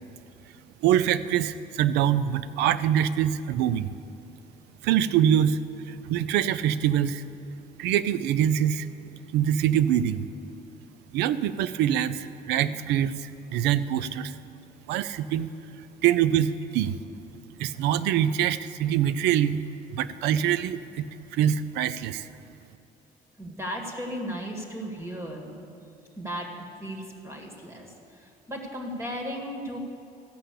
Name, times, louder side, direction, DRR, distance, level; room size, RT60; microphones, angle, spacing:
voice 1, 0.8-3.9 4.8-5.6 5.9-7.2 7.8-8.9 9.3-10.3 11.1-14.3 14.9-15.5 16.0-17.0 17.6-19.6 19.9-22.3, right 10 dB, 90° right, 15 dB, 0.5 m, -24 dB
voice 2, 23.4-25.7 26.2-29.8, equal, 15° right, 1 dB, 1.9 m, -36 dB
14.0 x 5.8 x 8.3 m, 2.6 s
cardioid pair, 110°, 17 cm